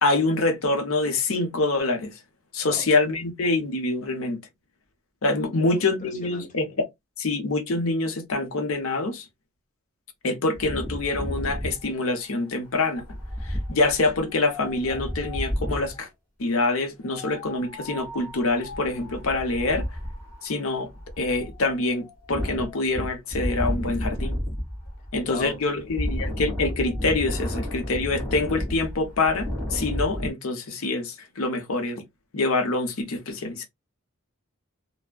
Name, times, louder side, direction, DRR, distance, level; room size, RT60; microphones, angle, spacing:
voice 1, 0.0-2.1 2.5-4.4 5.2-6.9 7.2-9.3 10.2-13.0 13.4-16.1 16.4-19.9 20.4-20.9 21.2-24.4 25.1-32.0 32.3-33.7, left 3 dB, 75° left, 0.7 m, -25 dB
voice 2, 5.6-6.5 25.2-25.6, left 4 dB, 35° left, 0.5 m, -37 dB
Wind, 10.6-16.0 17.0-30.3, equal, 5° right, 1.7 m, -32 dB
3.3 x 2.0 x 2.2 m
head